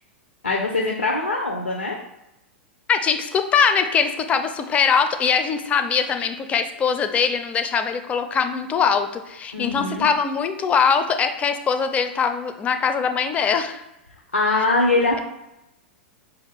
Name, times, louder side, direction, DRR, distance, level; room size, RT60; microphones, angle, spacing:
voice 1, 0.4-2.0 9.5-10.0 14.3-15.2, left 3 dB, 80° left, 1 dB, 0.5 m, -22 dB
voice 2, 2.9-13.8, left 6 dB, 20° left, 8 dB, 0.4 m, -22 dB
5.1 x 2.5 x 3.3 m, 0.90 s
figure-of-eight pair, 95°, 6 cm